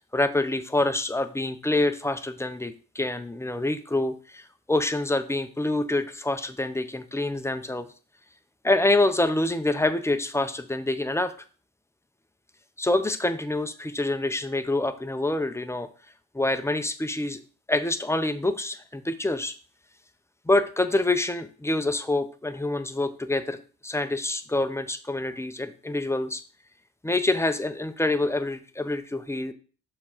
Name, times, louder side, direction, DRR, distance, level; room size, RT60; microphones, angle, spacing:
voice 1, 0.1-7.9 8.6-11.3 12.8-15.9 16.3-17.4 17.7-19.6 20.5-26.4 27.0-29.5, left 2 dB, 10° left, 10 dB, 0.6 m, -26 dB
6.6 x 3.7 x 4.5 m, 0.38 s
cardioid pair, 90°, 30 cm